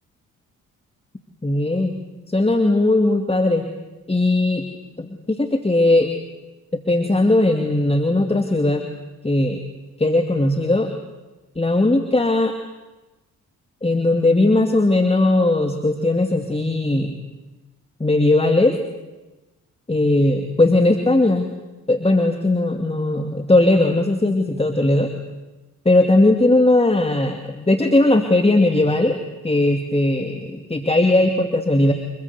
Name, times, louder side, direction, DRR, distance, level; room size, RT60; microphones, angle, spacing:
voice 1, 1.4-1.9 2.3-3.6 4.1-4.7 5.0-6.1 6.7-8.9 9.2-9.6 10.0-10.9 11.6-12.5 13.8-17.2 18.0-18.7 19.9-21.5 21.9-25.1 25.8-29.2 29.4-31.9, left 2 dB, 15° left, 6 dB, 2.6 m, -18 dB
26.5 x 21.0 x 8.4 m, 1.1 s
hypercardioid pair, 40°, 40 cm